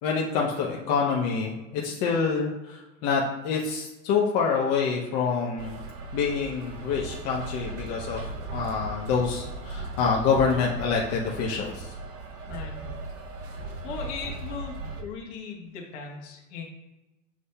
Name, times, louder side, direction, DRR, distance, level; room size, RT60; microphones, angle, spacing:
voice 1, 0.0-5.7 6.1-11.9, left 5 dB, 50° left, -2 dB, 0.8 m, -27 dB
sound 1, 5.6-15.0, right 2 dB, 35° right, 0.7 m, -37 dB
voice 2, 12.5-12.8 13.8-16.6, left 5 dB, 65° left, -1 dB, 1.2 m, -38 dB
7.3 x 2.6 x 2.2 m, 1.0 s
hypercardioid pair, 95°, 38 cm